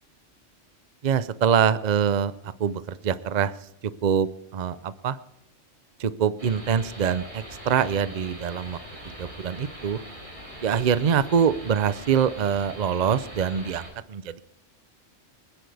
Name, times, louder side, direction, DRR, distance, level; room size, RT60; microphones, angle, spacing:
voice 1, 1.0-3.7 4.0-5.2 6.0-8.8 9.2-10.0 10.6-14.4, right 7 dB, 45° right, 14 dB, 0.7 m, -24 dB
sound 1, 6.4-13.9, equal, 60° right, 4.9 m, -42 dB
24.5 x 10.5 x 3.4 m, 0.85 s
omnidirectional pair, 1.3 m